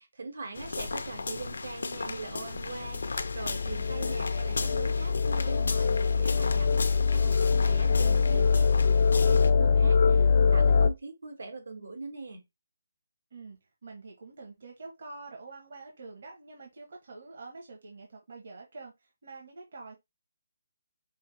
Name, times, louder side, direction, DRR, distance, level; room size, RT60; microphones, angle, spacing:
voice 1, 0.0-8.8 9.2-12.4, right 3 dB, 80° right, 1.6 m, -42 dB
sound 1, 0.5-9.5, left 3 dB, 80° left, 0.6 m, -36 dB
sound 2, 2.8-10.9, left 5 dB, 40° left, 0.3 m, -24 dB
voice 2, 7.8-8.6 13.3-19.9, right 3 dB, 55° right, 1.2 m, -46 dB
5.4 x 2.2 x 3.3 m
hypercardioid pair, 170°, 0 cm